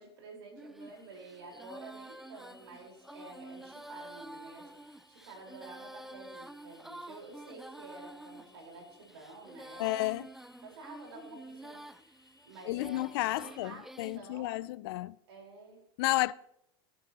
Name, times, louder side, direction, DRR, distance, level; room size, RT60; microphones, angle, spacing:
voice 1, 0.0-10.0 10.6-13.8 14.2-14.6 15.3-15.8, right 3 dB, 80° right, 4.7 m, -50 dB
Female singing, 0.6-14.2, right 1 dB, ahead, 0.4 m, -49 dB
sound 1, 0.8-13.6, left 2 dB, 25° left, 3.7 m, -65 dB
voice 2, 9.8-10.3 12.7-15.2 16.0-16.3, left 19 dB, 70° left, 0.4 m, -32 dB
17.5 x 9.9 x 3.0 m
hypercardioid pair, 100°, 13 cm